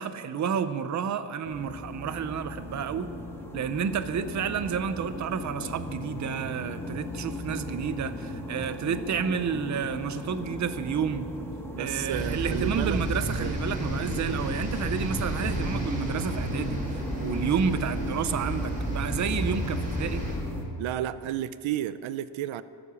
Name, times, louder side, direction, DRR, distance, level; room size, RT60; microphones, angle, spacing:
voice 1, 0.0-3.1 3.5-11.3 11.8-16.8 17.2-20.2, right 7 dB, 40° right, 12 dB, 0.7 m, -30 dB
sound 1, 1.4-20.6, left 1 dB, 5° left, 1.6 m, -36 dB
voice 2, 11.7-13.0 13.4-13.5 14.0-14.1 20.8-22.6, right 12 dB, 80° right, 15 dB, 0.6 m, -32 dB
sound 2, 12.1-20.3, right 1 dB, 15° right, 4.5 m, -32 dB
15.0 x 12.5 x 7.0 m, 2.6 s
wide cardioid pair, 170°, 47 cm